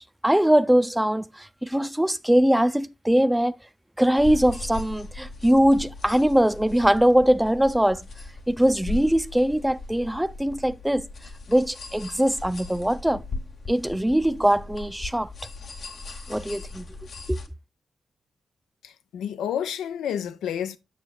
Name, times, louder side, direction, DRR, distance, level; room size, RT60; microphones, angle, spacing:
voice 1, 0.0-3.6 4.0-8.1 8.5-11.1 11.5-13.2 13.7-15.3 16.3-16.9 17.3-17.4, equal, 10° right, 0.5 m, -21 dB
sound 1, 4.2-17.5, left 3 dB, 65° left, 0.9 m, -38 dB
voice 2, 18.8-20.8, left 9 dB, 85° left, 0.4 m, -30 dB
7.1 x 6.2 x 2.4 m
supercardioid pair, 40°, 0 cm